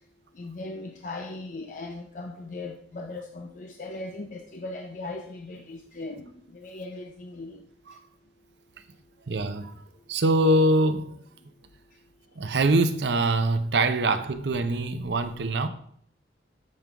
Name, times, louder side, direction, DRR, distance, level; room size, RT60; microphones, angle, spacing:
voice 1, 0.3-7.6, left 2 dB, 45° left, 0.5 m, -38 dB
voice 2, 9.3-9.7 10.1-11.2 12.4-15.7, right 2 dB, 75° right, 0.6 m, -23 dB
7.3 x 3.7 x 4.5 m
head